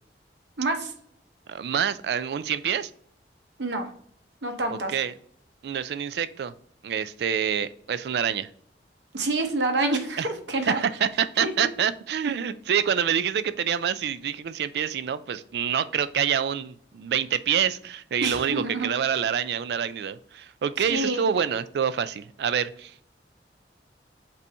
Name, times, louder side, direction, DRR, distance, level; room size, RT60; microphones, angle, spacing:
voice 1, 0.6-0.9 3.6-3.9 4.4-4.9 9.1-10.8 11.4-11.5 18.2-18.9 20.9-21.2, right 2 dB, 80° right, 5 dB, 0.9 m, -27 dB
voice 2, 1.5-2.9 4.7-5.1 5.6-6.5 6.8-8.5 10.2-10.3 10.7-23.0, right 8 dB, 65° right, 14 dB, 0.3 m, -27 dB
5.4 x 2.7 x 3.3 m, 0.63 s
head